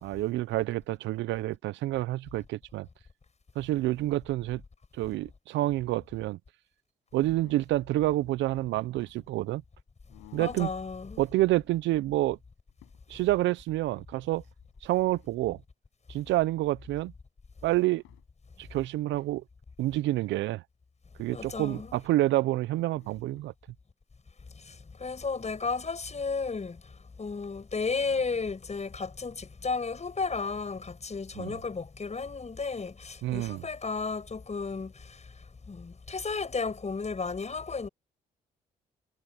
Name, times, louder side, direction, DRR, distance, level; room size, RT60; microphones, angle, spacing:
voice 1, 0.0-2.9 3.6-4.6 5.0-6.4 7.1-9.6 10.3-10.7 11.2-12.4 13.1-14.4 14.8-15.6 16.1-17.1 17.6-18.0 18.6-19.4 19.8-20.6 21.2-23.5 31.4-31.6 33.2-33.6, right 16 dB, 75° right, 0.8 m, -28 dB
sound 1, 7.1-7.9 8.6-9.4 10.1-10.8 11.3-11.9 12.3-12.4 12.7-13.3 14.6-15.3 17.5-17.6 18.0-18.3 18.6-19.4 22.8-23.5, left 21 dB, 85° left, 7.8 m, -56 dB
voice 2, 10.4-11.2 21.3-21.9 24.6-26.8 27.2-35.3 35.7-37.9, left 4 dB, 35° left, 7.2 m, -33 dB
hypercardioid pair, 50°, 19 cm